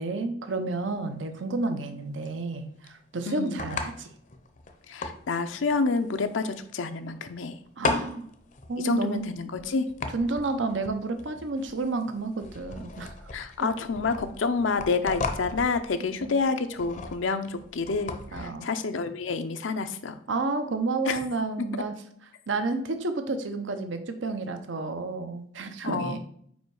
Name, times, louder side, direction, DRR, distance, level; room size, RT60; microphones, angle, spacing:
voice 1, 0.0-4.1 7.8-8.3 8.7-9.3 10.1-13.1 13.6-13.7 16.2-16.4 18.3-18.7 20.3-21.9 22.5-26.2, right 3 dB, 75° right, 8 dB, 0.7 m, -30 dB
sound 1, 0.7-18.4, left 3 dB, 40° left, 0.6 m, -37 dB
voice 2, 3.3-3.6 4.9-7.6 8.8-9.9 13.3-20.2 21.1-21.2 25.8-26.2, left 4 dB, 80° left, 8 dB, 0.6 m, -28 dB
5.2 x 4.5 x 4.7 m, 0.64 s
head